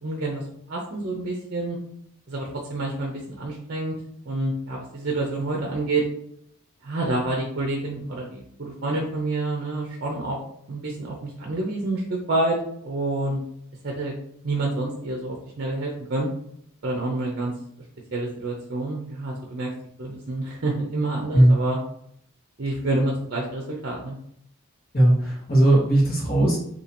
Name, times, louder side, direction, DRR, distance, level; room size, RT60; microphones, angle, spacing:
voice 1, 0.0-1.8 2.3-4.0 4.3-6.0 6.8-10.4 10.7-12.6 12.8-13.4 13.8-14.1 14.4-16.3 16.8-17.5 18.1-19.7 20.0-21.8 22.6-24.2, right 2 dB, 50° right, -1 dB, 0.6 m, -28 dB
voice 2, 24.9-26.6, right 1 dB, 45° left, -5 dB, 1.5 m, -18 dB
2.9 x 2.8 x 4.2 m, 0.70 s
head